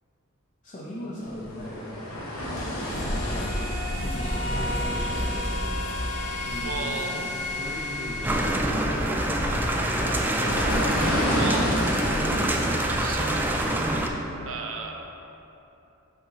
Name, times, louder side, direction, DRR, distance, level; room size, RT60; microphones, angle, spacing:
voice 1, 0.6-2.0 4.0-5.5 6.4-10.8, left 1 dB, 35° left, -6 dB, 0.7 m, -38 dB
sound 1, 1.3-13.8, equal, 85° left, 1.1 m, -31 dB
sound 2, 2.6-8.5, left 1 dB, 65° left, 1.3 m, -33 dB
voice 2, 6.6-7.1 11.3-11.7 13.0-13.9 14.5-15.1, right 5 dB, 70° right, 2 dB, 0.6 m, -35 dB
sound 3, 8.2-14.1, right 1 dB, 10° right, 0.3 m, -26 dB
5.5 x 5.4 x 4.0 m, 2.9 s
head